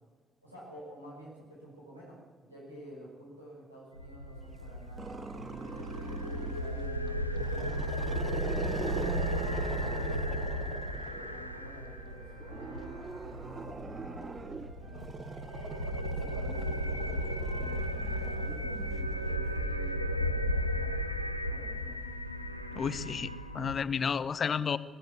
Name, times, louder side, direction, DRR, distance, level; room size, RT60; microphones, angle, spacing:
voice 1, 0.4-2.2 2.4-5.8 6.3-8.2 8.6-9.4 9.8-15.3 15.9-20.9 21.5-21.9, right 1 dB, 90° right, -5 dB, 6.1 m, -49 dB
sound 1, 4.0-23.7, equal, 90° left, 0.8 m, -35 dB
Growling, 5.0-6.7 7.3-11.4 12.4-18.9, right 4 dB, 30° right, 0.7 m, -41 dB
sound 2, 5.3-21.3, right 1 dB, 65° right, 7.0 m, -55 dB
voice 2, 22.7-24.8, left 6 dB, 45° left, 16 dB, 0.9 m, -31 dB
21.0 x 16.5 x 8.4 m, 1.5 s
figure-of-eight pair, 40°, 0 cm